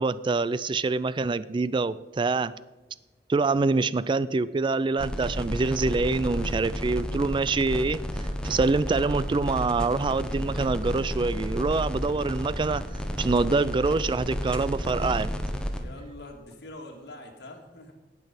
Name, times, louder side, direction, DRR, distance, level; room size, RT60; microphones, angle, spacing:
voice 1, 0.0-2.5 3.3-8.0 8.4-12.8 13.2-15.3, right 3 dB, 25° right, 17 dB, 0.3 m, -25 dB
sound 1, 5.0-15.8, equal, 5° left, 1.0 m, -32 dB
voice 2, 15.8-17.9, left 1 dB, 65° left, 1 dB, 2.0 m, -44 dB
18.0 x 6.0 x 5.2 m, 1.2 s
head